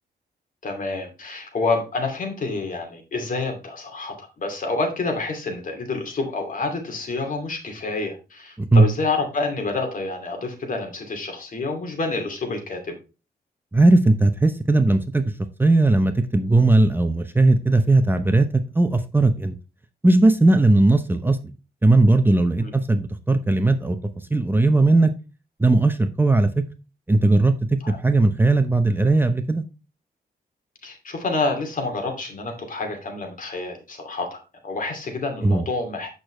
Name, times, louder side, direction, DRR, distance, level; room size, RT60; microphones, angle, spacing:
voice 1, 0.6-12.9 20.5-20.6 22.6-22.7 27.8-28.0 30.8-34.4 34.6-36.2, left 3 dB, 55° left, 2.7 m, -28 dB
voice 2, 13.7-15.2 15.6-18.5 18.7-19.6 20.0-21.4 21.8-24.0 24.3-25.1 25.6-26.6 27.1-27.5 28.0-29.6 35.4-35.7, right 2 dB, 15° right, 0.7 m, -18 dB
8.5 x 6.5 x 3.2 m
wide cardioid pair, 110°, 16 cm